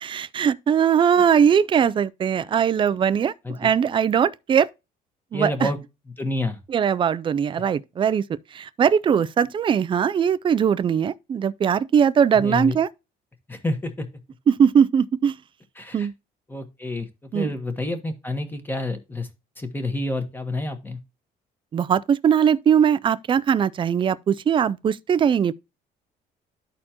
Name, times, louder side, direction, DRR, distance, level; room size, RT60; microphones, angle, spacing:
voice 1, 0.0-4.7 5.3-5.7 6.7-12.9 14.5-15.4 15.9-16.1 17.3-17.5 21.7-25.5, right 7 dB, 30° right, 0.4 m, -20 dB
voice 2, 5.3-5.8 6.2-6.6 12.3-12.8 13.5-14.1 15.8-16.1 16.5-17.1 17.3-19.3 19.6-21.0, left 1 dB, 10° left, 1.4 m, -28 dB
12.5 x 4.3 x 2.8 m
cardioid pair, 110°, 17 cm